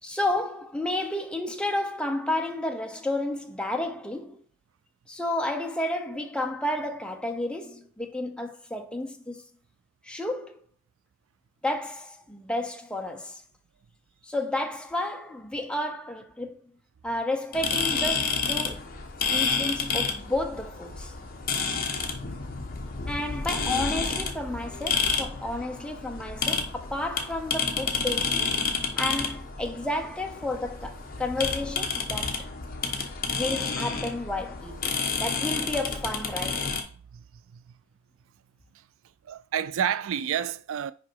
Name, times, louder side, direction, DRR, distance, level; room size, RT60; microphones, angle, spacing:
voice 1, 0.0-4.4 5.1-9.4 10.0-10.6 11.6-13.4 14.2-16.6 17.0-18.9 19.3-21.1 23.1-28.6 29.0-32.5 33.3-36.7, left 1 dB, 5° left, 0.6 m, -31 dB
sound 1, 17.5-36.8, left 5 dB, 40° left, 1.1 m, -30 dB
voice 2, 37.1-37.8 38.7-38.9 39.2-40.9, right 9 dB, 60° right, 0.3 m, -30 dB
5.9 x 5.1 x 4.5 m
head